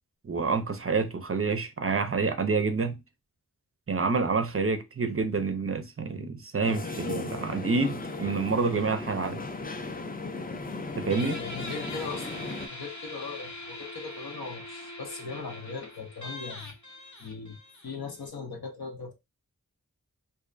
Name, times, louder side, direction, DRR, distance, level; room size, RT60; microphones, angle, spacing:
voice 1, 0.2-3.0 3.9-9.4 11.0-11.4, right 4 dB, 40° right, 0.4 m, -28 dB
sound 1, 6.6-12.7, left 3 dB, 25° left, 0.4 m, -36 dB
voice 2, 11.1-16.8 17.2-17.6 17.8-19.1, left 4 dB, 85° left, 0.8 m, -39 dB
Guitar, 11.1-18.3, left 1 dB, 50° left, 0.7 m, -42 dB
2.5 x 2.1 x 2.4 m
wide cardioid pair, 45°, 36 cm